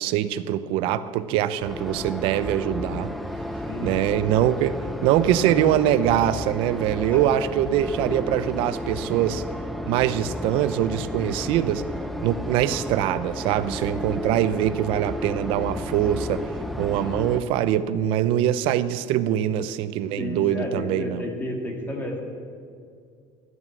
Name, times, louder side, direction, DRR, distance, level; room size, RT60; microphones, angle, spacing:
voice 1, 0.0-3.1 3.8-9.4 9.9-11.8 12.2-16.4 16.8-21.3, right 11 dB, 75° right, 14 dB, 0.7 m, -23 dB
sound 1, 1.6-17.4, left 1 dB, ahead, 0.9 m, -33 dB
voice 2, 20.2-22.2, left 1 dB, 20° left, 1 dB, 2.6 m, -31 dB
14.5 x 11.0 x 7.5 m, 2.2 s
cardioid pair, 145°, 9 cm